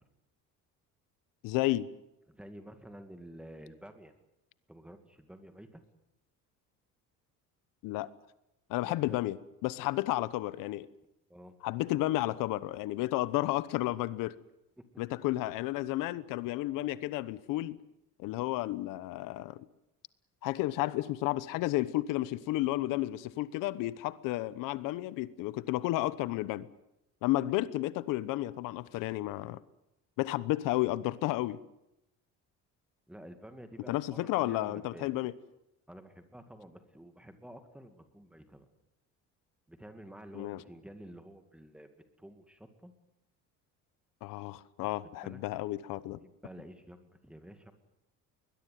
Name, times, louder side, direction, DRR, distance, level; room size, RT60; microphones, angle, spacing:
voice 1, 1.4-1.9 7.8-8.1 8.7-10.9 11.6-14.4 15.0-17.8 18.2-19.6 20.4-26.7 27.2-29.6 30.2-31.6 33.9-35.3 40.3-40.6 44.2-46.2, left 17 dB, 85° left, 1.1 m, -32 dB
voice 2, 2.3-4.1 4.7-5.8 8.8-9.2 11.3-11.6 14.8-14.9 33.1-35.1 35.9-38.7 39.7-41.9 42.2-42.9 45.2-45.4 46.0-47.7, right 1 dB, 5° right, 2.3 m, -50 dB
22.0 x 21.0 x 9.4 m
cardioid pair, 160°, 31 cm